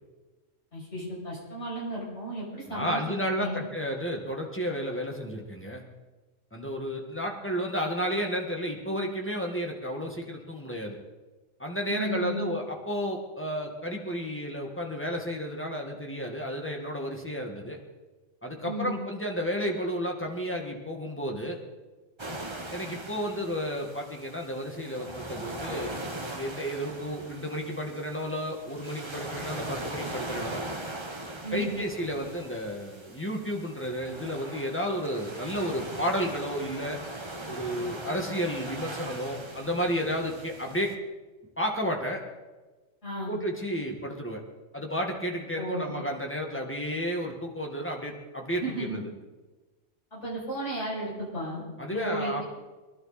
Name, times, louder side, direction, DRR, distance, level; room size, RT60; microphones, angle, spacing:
voice 1, 0.7-3.6 11.9-12.5 18.6-19.0 31.4-31.8 43.0-43.4 45.5-45.9 48.6-49.0 50.1-51.6 51.9-52.4, right 1 dB, 60° left, -6 dB, 7.5 m, -34 dB
voice 2, 2.7-5.8 6.5-11.0 11.6-17.8 18.4-21.6 22.7-25.9 26.3-30.6 31.5-37.0 37.5-40.9 41.6-42.2 43.3-44.4 44.7-49.1 51.8-52.4, equal, 10° left, 1 dB, 1.9 m, -32 dB
sound 1, 22.2-40.9, right 1 dB, 25° right, 1.0 m, -40 dB
23.0 x 12.0 x 4.3 m, 1.2 s
omnidirectional pair, 1.4 m